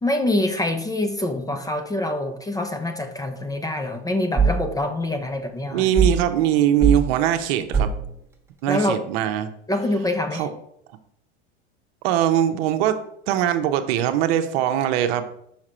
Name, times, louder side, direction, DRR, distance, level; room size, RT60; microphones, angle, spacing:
voice 1, 0.0-5.9 8.7-9.0 9.7-10.5, left 1 dB, 10° left, 7 dB, 0.6 m, -25 dB
sound 1, 4.4-4.7 6.0-6.3 6.8-7.1 7.7-8.1, right 5 dB, 5° right, 1.2 m, -20 dB
voice 2, 5.7-7.9 8.6-9.5 10.3-10.5 12.0-13.0 13.3-15.3, right 11 dB, 60° right, 8 dB, 0.8 m, -21 dB
5.8 x 4.8 x 4.3 m, 0.72 s
hypercardioid pair, 100°, 35 cm